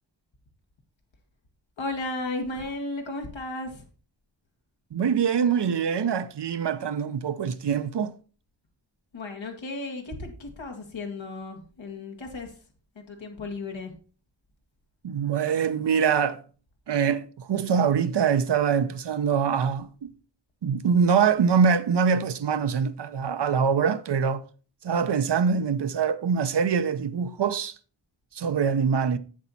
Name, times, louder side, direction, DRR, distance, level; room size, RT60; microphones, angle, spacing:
voice 1, 1.8-3.8 9.1-12.5 13.0-13.9, left 2 dB, 80° left, 2.0 m, -34 dB
voice 2, 4.9-8.1 15.0-16.4 16.9-20.1 20.6-24.4 24.8-27.7 28.3-29.2, right 6 dB, 65° right, 0.8 m, -24 dB
7.4 x 7.2 x 4.1 m
cardioid pair, 55°, 45 cm